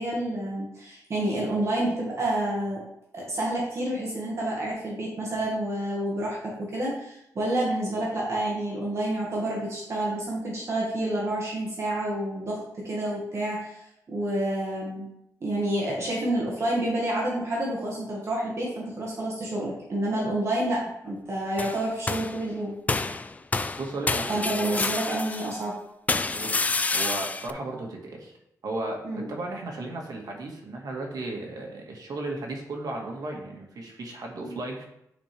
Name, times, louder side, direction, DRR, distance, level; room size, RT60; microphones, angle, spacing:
voice 1, 0.0-2.8 3.1-15.1 15.4-22.8 24.3-25.7 29.0-29.3 34.4-34.6, right 1 dB, 45° right, -4 dB, 1.7 m, -29 dB
sound 1, 21.6-22.4 22.9-25.6 26.1-27.5, left 3 dB, 20° left, 0.3 m, -28 dB
voice 2, 23.7-24.9 26.3-28.4 28.6-34.8, right 2 dB, 70° right, 0 dB, 1.7 m, -35 dB
9.8 x 4.4 x 3.4 m, 0.79 s
wide cardioid pair, 150°, 7 cm